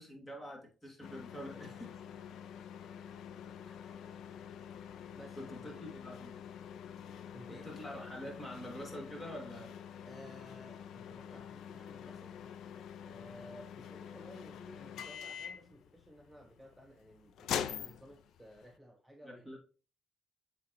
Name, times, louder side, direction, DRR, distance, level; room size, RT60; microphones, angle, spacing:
voice 1, 0.0-2.0 3.7-4.0 5.3-6.3 7.5-9.7 19.2-19.6, equal, 20° left, 2.4 m, -46 dB
sound 1, 1.0-18.8, left 9 dB, 75° left, 0.4 m, -46 dB
voice 2, 5.2-5.7 7.1-7.7 10.1-12.3 13.1-19.4, equal, 5° right, 0.7 m, -55 dB
7.8 x 4.2 x 3.0 m
cardioid pair, 90°, 0 cm